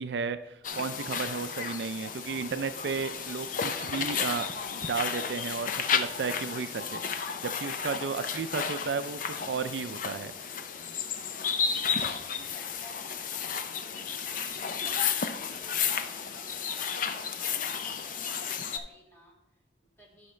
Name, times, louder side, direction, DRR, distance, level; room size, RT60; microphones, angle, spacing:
voice 1, 0.0-7.0 7.4-10.5, right 5 dB, 70° right, 11 dB, 0.4 m, -34 dB
sound 1, 0.6-18.8, left 6 dB, 45° left, 0.5 m, -33 dB
voice 2, 10.7-20.3, equal, 15° left, -3 dB, 2.0 m, -56 dB
11.5 x 5.7 x 3.2 m, 0.91 s
head